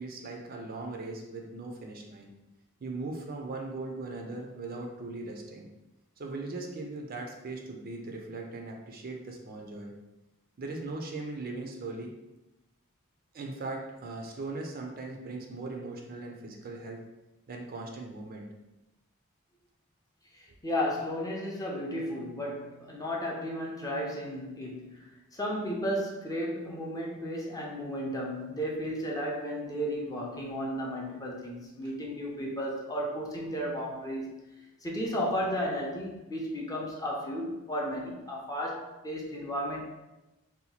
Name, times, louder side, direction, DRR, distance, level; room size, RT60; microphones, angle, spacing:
voice 1, 0.0-2.3 2.8-5.7 6.2-9.9 10.6-12.1 13.3-17.0 17.5-18.5 31.8-31.9, right 3 dB, 40° right, 1 dB, 0.4 m, -39 dB
voice 2, 20.3-34.3 34.8-39.8, equal, 15° left, -2 dB, 0.5 m, -34 dB
2.8 x 2.2 x 4.1 m, 1.0 s
head